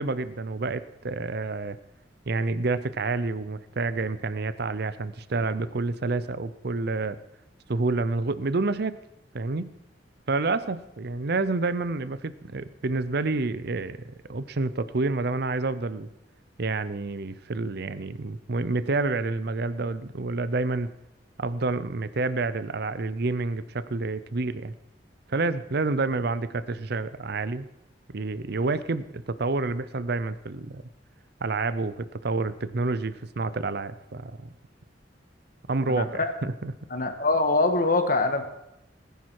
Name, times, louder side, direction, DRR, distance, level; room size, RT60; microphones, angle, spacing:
voice 1, 0.0-1.8 2.3-7.2 7.7-9.0 9.3-9.7 10.3-16.1 16.6-20.9 21.4-24.7 25.3-27.7 28.1-30.8 31.4-34.5 35.7-36.7, right 3 dB, 60° right, 15 dB, 0.7 m, -28 dB
voice 2, 35.9-36.3 36.9-38.5, left 2 dB, 50° left, 7 dB, 1.6 m, -24 dB
19.0 x 10.0 x 4.7 m, 0.88 s
head